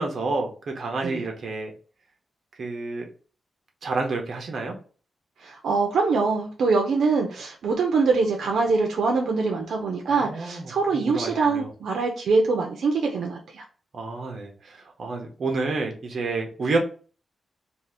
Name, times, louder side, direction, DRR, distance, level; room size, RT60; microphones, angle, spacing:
voice 1, 0.0-1.7 2.6-3.1 3.8-4.7 10.0-11.7 13.9-16.8, right 3 dB, 55° right, 3 dB, 0.7 m, -29 dB
voice 2, 5.4-13.6, right 4 dB, 80° right, 1 dB, 0.5 m, -24 dB
2.7 x 2.4 x 3.3 m, 0.39 s
wide cardioid pair, 130°, 0 cm